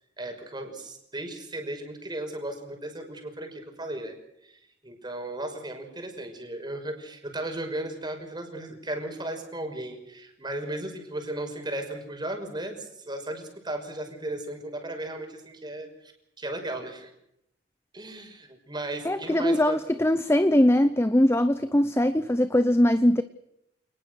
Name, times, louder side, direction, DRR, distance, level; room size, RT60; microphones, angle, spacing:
voice 1, 0.2-4.2 4.4-16.1 16.4-17.1 17.9-19.8, right 1 dB, 25° right, 5.8 m, -36 dB
voice 2, 19.0-23.2, left 1 dB, 15° left, 0.8 m, -21 dB
28.0 x 20.5 x 6.5 m
head